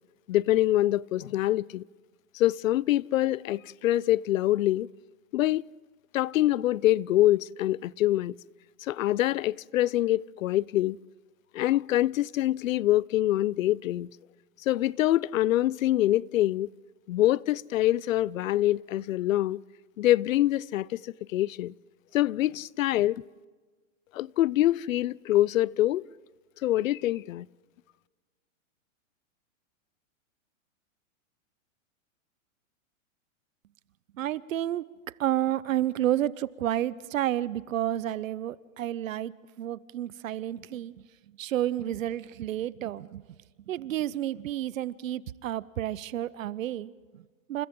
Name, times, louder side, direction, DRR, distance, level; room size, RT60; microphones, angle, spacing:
voice 1, 0.3-1.8 2.3-4.9 5.3-5.6 6.1-8.4 8.8-11.0 11.5-14.1 14.7-16.7 17.1-19.6 20.0-21.7 22.1-23.2 24.1-26.1 26.6-27.5, left 14 dB, 75° left, 0.6 m, -25 dB
voice 2, 34.1-34.8 35.2-41.0 41.4-43.2 43.7-47.7, right 12 dB, 75° right, 0.9 m, -30 dB
29.5 x 28.5 x 3.8 m
supercardioid pair, 165°, 40 cm